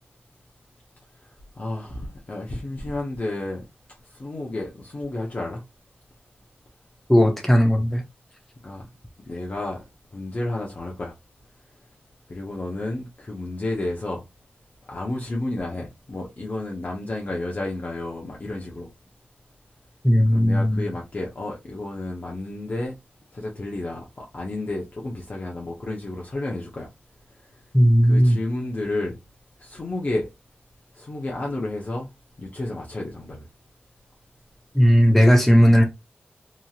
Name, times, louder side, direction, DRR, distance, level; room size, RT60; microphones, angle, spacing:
voice 1, 1.6-3.6 4.1-5.6 8.6-8.9 9.3-9.8 10.1-11.1 12.3-14.2 14.9-18.9 20.3-23.0 23.3-26.9 28.0-29.2 29.6-30.3 30.9-32.1 32.4-33.5, left 2 dB, 45° left, 0.8 m, -31 dB
voice 2, 7.1-8.0 20.0-20.9 27.7-28.4 34.7-35.8, equal, 5° left, 0.7 m, -16 dB
3.0 x 2.6 x 2.4 m
wide cardioid pair, 70°, 4 cm